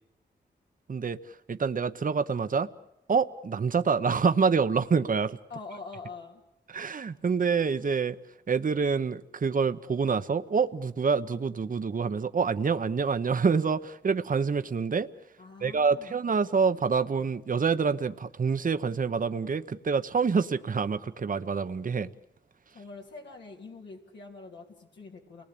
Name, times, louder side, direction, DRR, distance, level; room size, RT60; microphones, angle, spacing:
voice 1, 0.9-2.7 3.1-5.4 6.7-8.2 8.5-15.1 15.6-22.1, right 5 dB, 50° right, 11 dB, 0.9 m, -27 dB
voice 2, 5.5-6.4 15.4-16.2 22.7-25.4, left 4 dB, 90° left, -1 dB, 3.3 m, -44 dB
29.0 x 19.5 x 8.6 m, 0.86 s
cardioid pair, 60°, 18 cm